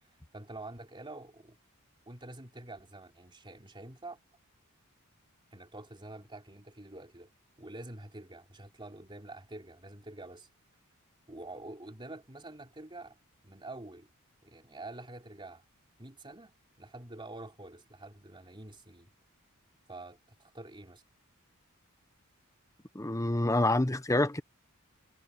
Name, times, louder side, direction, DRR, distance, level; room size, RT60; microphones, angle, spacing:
voice 1, 0.0-1.6 2.1-4.2 5.5-7.3 7.6-10.5 11.3-13.2 13.4-14.1 14.4-15.6 16.0-19.1 19.9-21.0, right 2 dB, 20° right, 3.5 m, -47 dB
voice 2, 22.9-24.4, left 1 dB, 15° left, 1.1 m, -27 dB
head